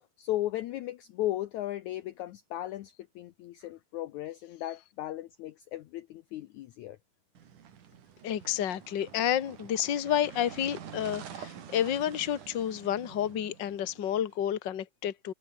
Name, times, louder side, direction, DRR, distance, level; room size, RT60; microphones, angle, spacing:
voice 1, 0.2-7.0, left 14 dB, 80° left, 1.7 m, -36 dB
sound 1, 7.3-14.3, right 8 dB, 55° right, 3.6 m, -48 dB
voice 2, 8.2-15.3, left 10 dB, 45° left, 1.4 m, -30 dB
omnidirectional pair, 4.5 m